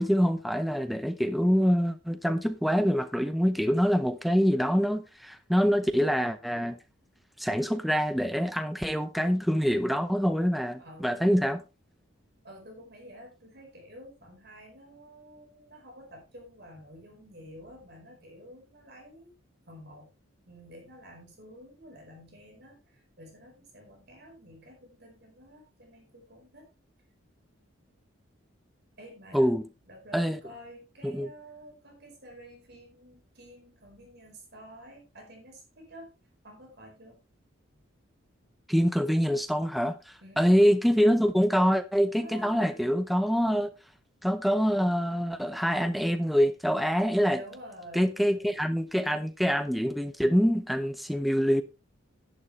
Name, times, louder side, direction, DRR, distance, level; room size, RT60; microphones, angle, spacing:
voice 1, 0.0-6.8 7.4-11.6 29.3-29.6 30.1-30.4 31.0-31.3 38.7-43.7 44.2-47.4 47.9-51.6, equal, ahead, 0.7 m, -25 dB
voice 2, 10.8-11.2 12.4-19.4 19.7-20.2 20.5-26.7 29.0-36.1 36.4-37.2 37.7-37.8 40.2-40.5 42.2-42.7 47.3-48.5, equal, 55° right, 4.6 m, -50 dB
11.5 x 11.0 x 3.3 m
head